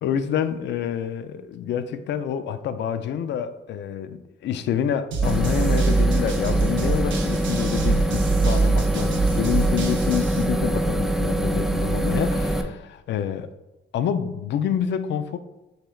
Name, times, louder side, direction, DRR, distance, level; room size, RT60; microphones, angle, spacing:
voice 1, 0.0-13.5 13.9-15.4, left 9 dB, 65° left, 0.4 m, -27 dB
sound 1, 5.1-10.4, right 3 dB, 75° right, 0.7 m, -24 dB
sound 2, 5.2-12.6, right 1 dB, ahead, 0.4 m, -24 dB
6.5 x 3.2 x 2.3 m
cardioid pair, 90°, 20 cm